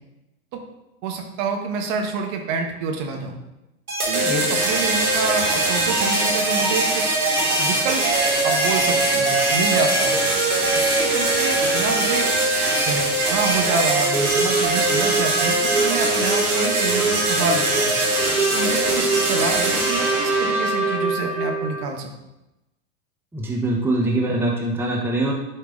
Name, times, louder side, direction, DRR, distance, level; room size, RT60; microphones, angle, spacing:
voice 1, 1.0-3.4 4.1-7.1 7.6-8.1 8.4-10.2 10.7-12.3 12.7-13.0 13.3-17.9 18.5-22.1, right 4 dB, 45° right, 3 dB, 1.5 m, -27 dB
sound 1, 3.9-21.8, right 2 dB, 85° right, 2.9 m, -21 dB
voice 2, 4.2-4.6 23.3-25.3, right 2 dB, 5° right, -1 dB, 1.2 m, -23 dB
11.0 x 5.4 x 3.8 m, 0.95 s
figure-of-eight pair, 95°, 43 cm